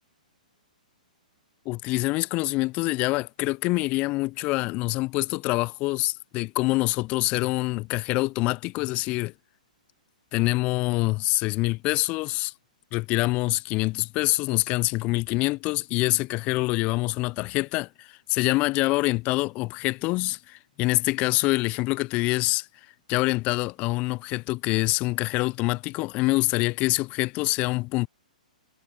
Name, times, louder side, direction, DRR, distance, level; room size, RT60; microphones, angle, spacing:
voice 1, 1.7-9.3 10.3-12.5 12.9-22.7 23.1-28.1, left 22 dB, 30° left, 0.6 m, -25 dB
figure-of-eight pair, 115°, 4 cm